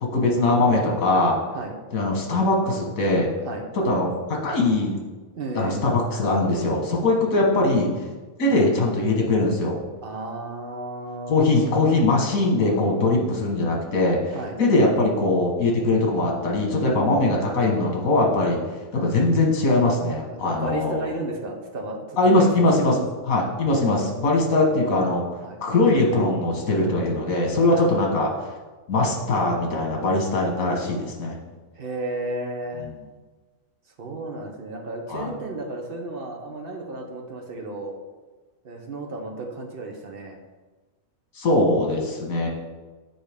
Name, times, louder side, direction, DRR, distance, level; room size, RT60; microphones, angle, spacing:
voice 1, 0.0-1.4 1.9-3.3 3.8-4.9 5.5-7.9 8.4-9.8 11.3-18.6 18.9-21.1 22.2-25.2 25.6-28.3 28.9-31.4 32.8-32.9 35.1-35.3 41.3-42.5, left 2 dB, 85° left, 0 dB, 1.7 m, -21 dB
voice 2, 5.3-5.9 10.0-11.8 14.3-14.6 19.0-19.2 20.3-22.9 25.4-25.6 27.7-27.9 31.8-32.9 34.0-37.9 38.6-40.4, right 2 dB, 45° right, 1 dB, 1.0 m, -33 dB
8.8 x 4.0 x 3.5 m, 1.3 s
omnidirectional pair, 1.4 m